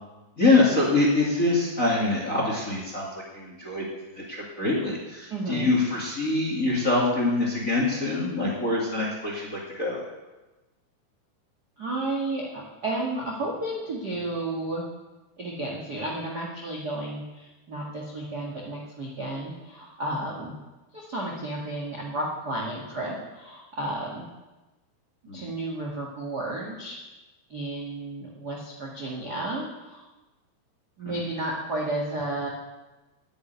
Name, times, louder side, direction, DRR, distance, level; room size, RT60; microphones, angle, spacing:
voice 1, 0.4-3.8 4.1-10.0 25.3-25.4 31.0-31.2, left 2 dB, 30° left, -2 dB, 1.6 m, -24 dB
voice 2, 5.3-5.7 11.8-14.8 15.4-20.5 20.9-24.2 25.3-27.0 27.5-30.0 31.0-32.5, right 2 dB, 55° right, -2 dB, 1.1 m, -32 dB
10.0 x 10.0 x 9.4 m, 1.1 s
omnidirectional pair, 5.1 m